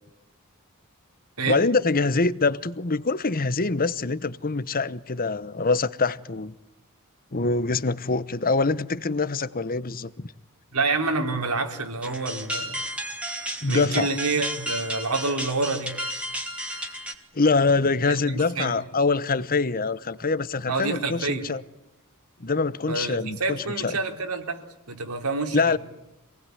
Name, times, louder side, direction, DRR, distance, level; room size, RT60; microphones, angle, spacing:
voice 1, 1.4-6.5 7.3-10.3 13.6-14.1 17.3-21.6 22.4-24.0 25.5-25.8, left 3 dB, 40° left, 1.0 m, -24 dB
voice 2, 10.7-12.8 13.7-16.0 18.1-18.2 18.6-18.7 20.7-21.5 22.9-24.6 24.9-25.8, right 3 dB, 85° right, 3.9 m, -27 dB
sound 1, 12.0-17.1, equal, 5° right, 2.8 m, -33 dB
27.0 x 19.0 x 9.6 m
head